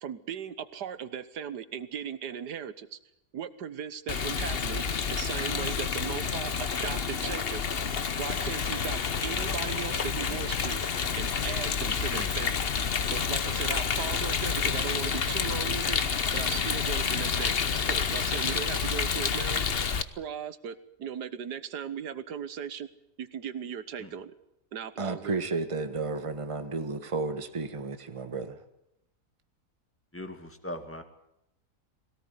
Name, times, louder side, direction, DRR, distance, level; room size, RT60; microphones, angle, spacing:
voice 1, 0.0-3.0 3.3-4.8 5.1-7.6 8.2-10.8 11.2-12.7 13.1-16.0 16.3-17.5 17.8-19.7 20.2-22.9 23.2-24.3 24.7-25.4, right 8 dB, 80° right, 1.7 m, -37 dB
Rain, 4.1-20.0, left 6 dB, 40° left, 1.0 m, -29 dB
voice 2, 25.0-28.6, right 3 dB, 20° right, 1.4 m, -32 dB
voice 3, 30.1-31.0, left 1 dB, 10° left, 2.0 m, -40 dB
21.5 x 18.0 x 9.4 m
omnidirectional pair, 1.7 m